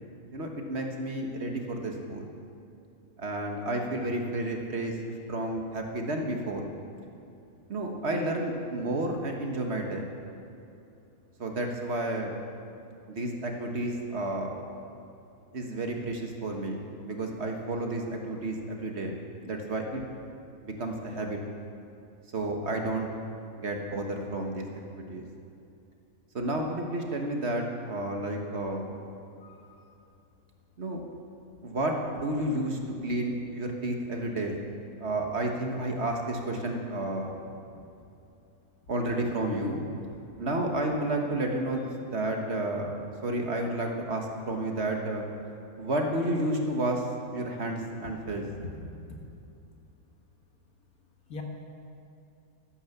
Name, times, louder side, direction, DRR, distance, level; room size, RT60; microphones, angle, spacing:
voice 1, 0.3-2.3 3.2-5.0 5.3-6.6 7.7-10.0 11.4-12.4 13.1-14.6 15.5-19.1 19.4-20.0 20.6-21.4 22.3-23.1 23.6-25.2 26.3-29.0 30.8-31.0 31.6-34.6 35.0-37.4 38.9-39.8 40.4-41.8 42.1-45.3 45.8-47.0 47.3-48.4, right 1 dB, 50° right, 2 dB, 1.7 m, -31 dB
voice 2, 29.4-29.9 51.3-51.4, left 4 dB, 85° left, 2 dB, 2.1 m, -43 dB
13.0 x 11.5 x 7.2 m, 2.7 s
omnidirectional pair, 1.5 m